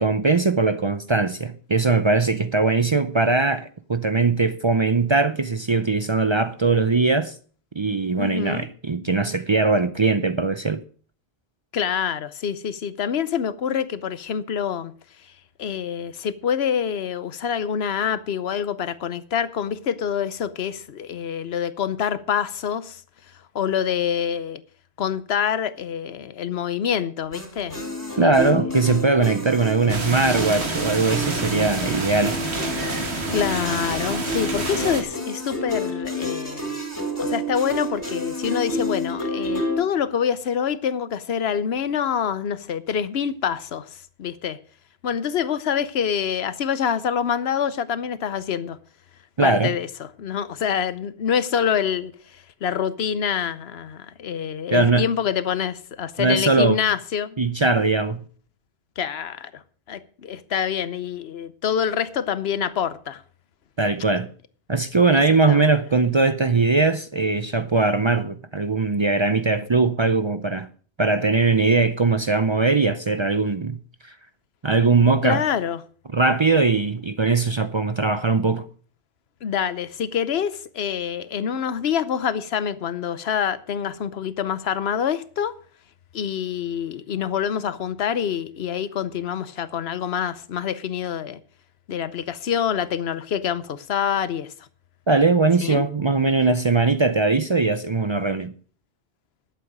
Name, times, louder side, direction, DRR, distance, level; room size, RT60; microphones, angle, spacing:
voice 1, 0.0-7.3 7.8-10.8 28.2-32.4 49.4-49.7 54.7-55.1 56.2-56.8 57.4-58.2 63.8-64.3 64.7-70.7 71.0-73.8 74.0-74.1 74.6-75.4 76.1-78.6 95.1-98.5, right 3 dB, 35° right, 0.5 m, -20 dB
voice 2, 8.2-8.7 11.7-14.9 15.6-23.0 23.5-24.6 25.0-27.9 28.2-28.6 33.3-36.7 37.2-43.9 44.2-44.6 45.0-48.8 49.4-52.1 52.6-57.4 59.0-59.5 59.9-63.2 65.1-65.2 65.5-65.7 75.2-75.8 79.4-85.5 86.1-91.4 91.9-94.5 95.6-95.8, left 8 dB, 75° left, 1.1 m, -26 dB
sound 1, 27.3-39.8, left 1 dB, 15° left, 4.5 m, -29 dB
sound 2, 29.9-35.0, right 3 dB, 80° right, 2.1 m, -28 dB
12.0 x 8.2 x 6.1 m
omnidirectional pair, 1.1 m